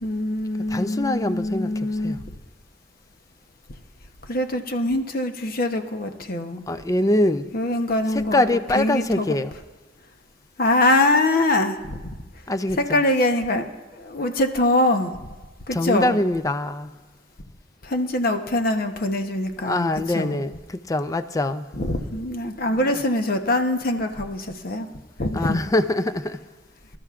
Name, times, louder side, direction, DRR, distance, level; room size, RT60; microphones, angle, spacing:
voice 1, 0.0-2.2 4.3-6.6 7.5-8.4 8.7-9.3 10.6-12.0 12.8-13.7 13.9-15.2 15.7-16.2 17.8-19.9 20.1-20.4 21.7-24.9 25.2-25.6, left 1 dB, 50° left, 0.9 m, -23 dB
voice 2, 0.7-2.2 6.7-7.5 8.3-9.5 12.5-13.0 15.7-16.9 19.6-21.7 25.3-26.4, left 1 dB, 20° left, 0.4 m, -23 dB
25.0 x 12.5 x 2.4 m
head